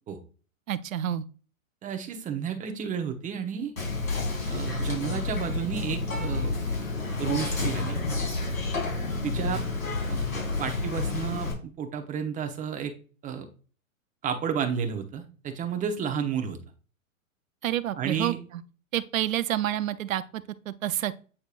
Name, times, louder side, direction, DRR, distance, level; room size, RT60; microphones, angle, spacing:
voice 1, 0.7-1.2 17.6-18.3 18.9-21.1, right 12 dB, 70° right, 0.7 m, -29 dB
voice 2, 1.8-3.7 4.5-6.5 7.2-8.0 9.2-9.6 10.1-10.2 10.6-12.9 13.2-13.5 14.2-16.6 18.0-18.4, right 7 dB, 20° right, 0.9 m, -31 dB
Whispering, 3.8-11.5, left 3 dB, 80° left, 3.3 m, -30 dB
8.5 x 4.4 x 2.5 m
hypercardioid pair, 115°, 41 cm